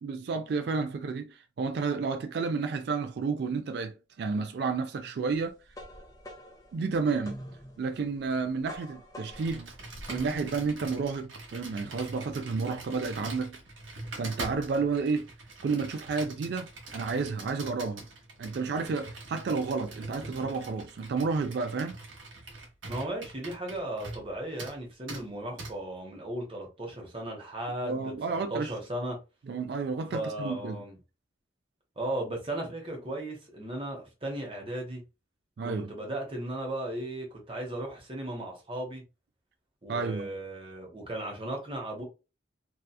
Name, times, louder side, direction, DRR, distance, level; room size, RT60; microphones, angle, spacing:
voice 1, 0.0-5.6 6.7-7.4 7.8-9.7 10.1-13.6 14.1-15.3 15.6-18.0 18.4-22.0 25.1-25.2 27.8-28.7 29.5-30.8 35.6-35.9 39.9-40.3, right 4 dB, 55° right, 0.3 m, -31 dB
sound 1, 5.3-10.8, equal, 20° left, 0.6 m, -46 dB
Computer keyboard, 9.3-24.3 24.6-24.8 25.1-25.2 25.6-25.7, right 2 dB, 85° right, 1.0 m, -43 dB
voice 2, 22.9-29.2 30.1-31.0 32.0-35.0 35.6-39.0 39.8-42.0, right 1 dB, 30° right, 0.9 m, -36 dB
2.8 x 2.3 x 2.2 m
head